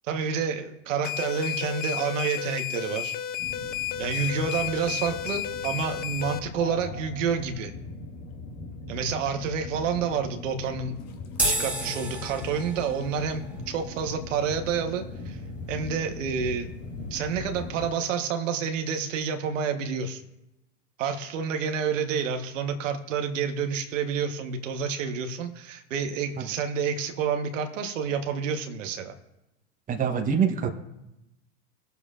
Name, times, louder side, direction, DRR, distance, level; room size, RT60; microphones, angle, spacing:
voice 1, 0.1-3.1 4.0-7.7 8.9-11.0 11.4-15.4 15.7-16.7 17.1-20.2 21.0-29.1, right 6 dB, 75° right, 5 dB, 1.2 m, -29 dB
sound 1, 1.0-6.4, left 10 dB, 25° left, 0.5 m, -32 dB
sound 2, 3.4-17.9, left 3 dB, 45° left, 1.6 m, -40 dB
sound 3, 11.3-17.9, right 1 dB, 5° right, 2.0 m, -35 dB
voice 2, 29.9-30.7, right 7 dB, 20° right, 5 dB, 1.0 m, -25 dB
19.5 x 6.9 x 2.5 m, 0.91 s
hypercardioid pair, 105°, 38 cm